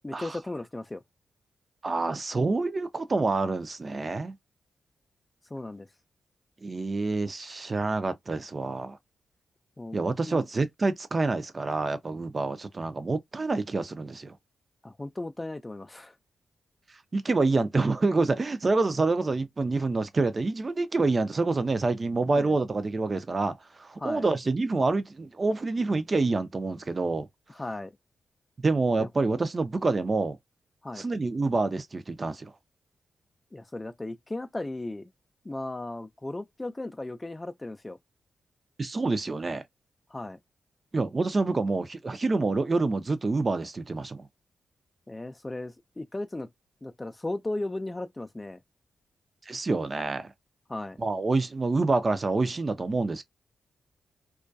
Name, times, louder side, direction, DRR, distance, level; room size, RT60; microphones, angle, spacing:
voice 1, 0.0-1.0 5.5-5.9 9.8-10.0 10.3-10.4 14.8-16.1 22.3-22.6 24.0-24.2 27.5-28.0 29.0-29.1 30.8-31.1 33.5-35.1 35.4-38.0 40.1-40.4 45.1-46.5 46.8-48.6 50.7-51.0, left 2 dB, 25° left, 0.3 m, -36 dB
voice 2, 1.8-4.3 6.6-9.0 9.9-14.4 16.9-27.3 28.6-30.4 31.0-32.5 38.8-39.6 40.9-44.3 49.5-50.3 51.0-53.2, right 3 dB, 40° right, 0.5 m, -27 dB
2.3 x 2.2 x 2.5 m
supercardioid pair, 45°, 0 cm